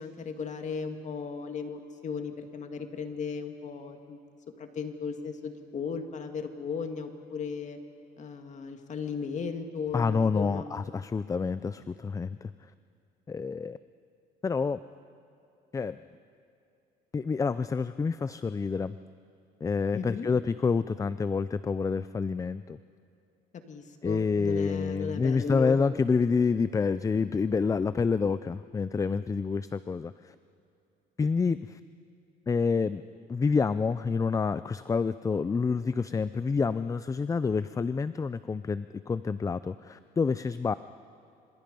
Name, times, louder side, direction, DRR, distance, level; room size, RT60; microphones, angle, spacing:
voice 1, 0.0-4.2 4.6-7.8 8.2-10.7 19.9-20.3 23.5-25.8, left 5 dB, 45° left, 6 dB, 2.1 m, -36 dB
voice 2, 9.9-12.5 13.3-13.8 14.4-14.8 15.7-16.0 17.1-19.0 19.6-22.8 24.0-30.3 31.2-31.8 32.5-33.0 33.3-40.7, left 5 dB, 20° left, 14 dB, 0.4 m, -28 dB
28.0 x 26.5 x 5.4 m, 2.6 s
cardioid pair, 110°, 17 cm